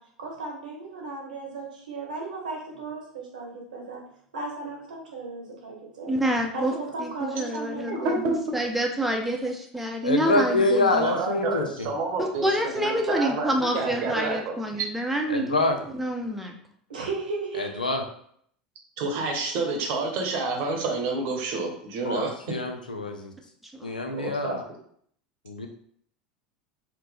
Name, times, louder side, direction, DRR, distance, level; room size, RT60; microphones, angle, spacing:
voice 1, 0.2-4.0 4.3-6.1 6.5-8.1 16.9-17.7, right 3 dB, 75° right, -1 dB, 1.1 m, -35 dB
voice 2, 6.1-6.7 7.0-11.2 12.2-15.6 15.9-16.6 23.7-23.9, right 1 dB, 5° right, 1 dB, 0.6 m, -27 dB
voice 3, 7.9-8.4 11.0-12.5 12.7-14.8 19.0-22.3 24.1-24.6, right 3 dB, 50° right, 1 dB, 0.9 m, -29 dB
voice 4, 10.0-11.9 15.3-15.8 17.6-18.0 22.1-23.3 23.8-24.6 25.5-25.7, left 2 dB, 85° left, 4 dB, 0.5 m, -26 dB
4.3 x 2.1 x 3.3 m, 0.65 s
figure-of-eight pair, 75°, 4 cm